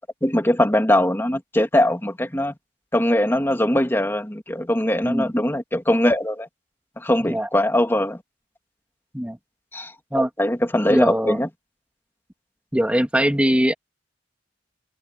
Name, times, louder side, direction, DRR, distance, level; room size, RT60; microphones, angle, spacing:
voice 1, 0.2-2.5 2.9-6.5 7.0-8.2 9.7-11.5, left 1 dB, 15° left, 2.7 m, -21 dB
voice 2, 10.9-11.4 12.7-13.7, equal, 5° right, 2.2 m, -21 dB
head